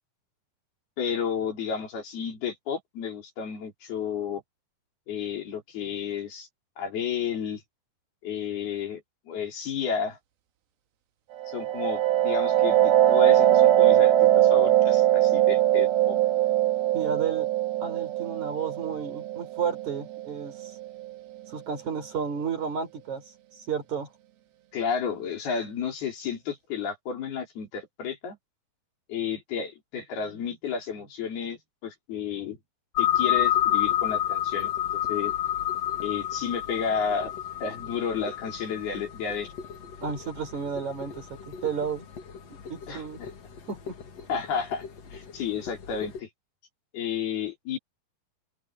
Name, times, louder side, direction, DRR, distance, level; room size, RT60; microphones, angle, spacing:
voice 1, 1.0-4.4 5.1-6.5 6.8-7.6 8.2-10.2 11.5-16.2 24.7-28.4 29.1-32.6 33.0-35.3 36.0-37.3 37.6-39.5 42.9-43.3 44.3-44.8 45.1-46.3 46.9-47.8, left 7 dB, 80° left, 6.5 m, -32 dB
sound 1, 11.4-20.9, right 13 dB, 85° right, 3.3 m, -21 dB
voice 2, 16.9-17.5 17.8-20.7 21.5-23.2 23.6-24.1 40.0-42.1 42.7-43.2 43.7-44.0 44.3-44.4, right 6 dB, 50° right, 6.0 m, -32 dB
sound 2, 33.0-46.2, left 11 dB, 45° left, 3.0 m, -30 dB
open air
omnidirectional pair, 4.4 m